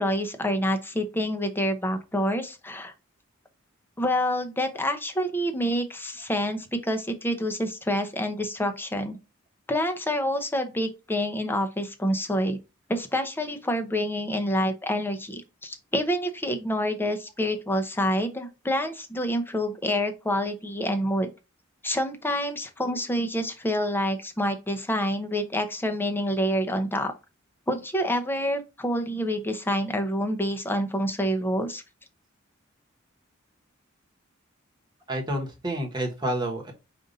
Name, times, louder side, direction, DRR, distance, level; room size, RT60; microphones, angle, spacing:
voice 1, 0.0-2.9 4.0-9.2 9.7-12.6 12.9-21.3 21.8-27.1 27.7-31.8, equal, 10° left, 0.6 m, -27 dB
voice 2, 35.1-36.7, right 1 dB, 20° right, 1.2 m, -29 dB
5.2 x 2.6 x 4.0 m
head